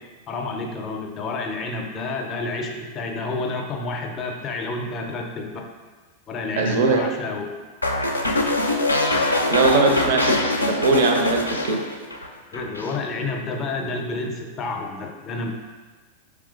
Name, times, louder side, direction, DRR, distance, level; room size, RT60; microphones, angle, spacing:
voice 1, 0.3-5.6 6.3-7.6 12.5-15.5, left 3 dB, 30° left, 2 dB, 0.5 m, -29 dB
voice 2, 6.6-7.1 9.5-11.8, right 3 dB, 55° right, 3 dB, 0.5 m, -20 dB
sound 1, 7.8-12.3 12.5-13.0, left 2 dB, 85° left, 0.4 m, -23 dB
4.7 x 3.4 x 2.4 m, 1.4 s
figure-of-eight pair, 90°, 0 cm